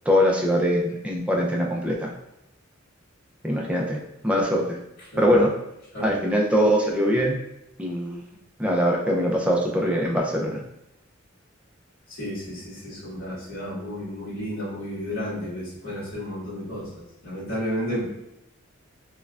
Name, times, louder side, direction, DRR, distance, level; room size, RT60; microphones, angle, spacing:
voice 1, 0.1-2.1 3.4-4.0 4.2-4.8 5.2-5.5 6.0-7.4 7.8-8.2 8.6-10.6, equal, 5° right, -1 dB, 0.5 m, -22 dB
voice 2, 12.2-16.9 17.2-18.0, equal, 55° left, -12 dB, 1.5 m, -32 dB
5.4 x 2.3 x 2.4 m, 0.86 s
head